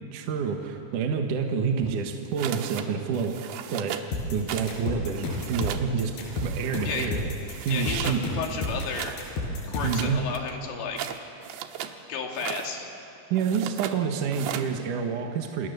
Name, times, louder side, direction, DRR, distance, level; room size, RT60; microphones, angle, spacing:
voice 1, 0.1-4.0 4.3-7.2 7.7-8.3 9.8-10.3 13.3-15.7, right 6 dB, 60° right, 4 dB, 2.4 m, -28 dB
sound 1, 2.4-2.9 3.1-4.1 4.5-4.8 5.1-5.9 6.3-7.1 7.5-8.2 8.6-9.2 9.8-12.0 12.3-12.7 13.4-14.0 14.3-14.7, right 10 dB, 80° right, 3.3 m, -37 dB
sound 2, 4.1-10.1, left 2 dB, 60° left, 6.6 m, -31 dB
voice 2, 7.7-9.2 9.6-11.1 12.1-12.9, left 5 dB, 80° left, 2 dB, 4.7 m, -33 dB
29.0 x 27.5 x 6.9 m, 2.9 s
omnidirectional pair, 5.1 m